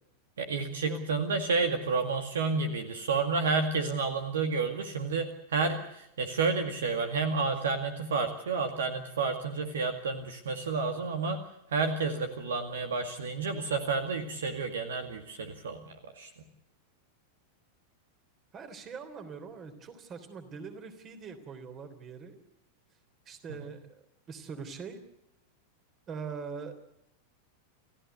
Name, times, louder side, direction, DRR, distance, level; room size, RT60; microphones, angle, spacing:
voice 1, 0.4-11.4 11.7-16.3, right 4 dB, 65° right, 7 dB, 2.1 m, -30 dB
voice 2, 18.5-22.4 23.3-24.0 24.3-25.0 26.1-26.7, right 5 dB, 30° right, 9 dB, 3.5 m, -42 dB
29.0 x 15.5 x 8.1 m, 0.82 s
figure-of-eight pair, 90°, 0 cm